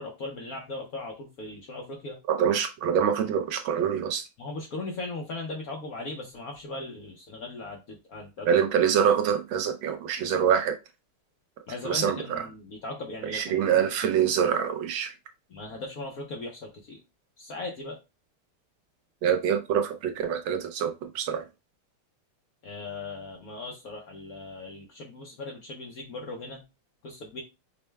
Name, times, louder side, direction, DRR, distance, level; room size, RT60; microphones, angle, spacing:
voice 1, 0.0-2.2 4.4-8.5 11.7-13.6 15.5-17.0 17.4-18.0 22.6-26.6 27.0-27.4, left 2 dB, 65° left, 0.9 m, -38 dB
voice 2, 2.3-4.2 8.5-10.7 11.8-12.4 13.2-15.1 19.2-21.4, right 8 dB, 75° right, 1.3 m, -25 dB
5.2 x 2.2 x 3.2 m
omnidirectional pair, 2.4 m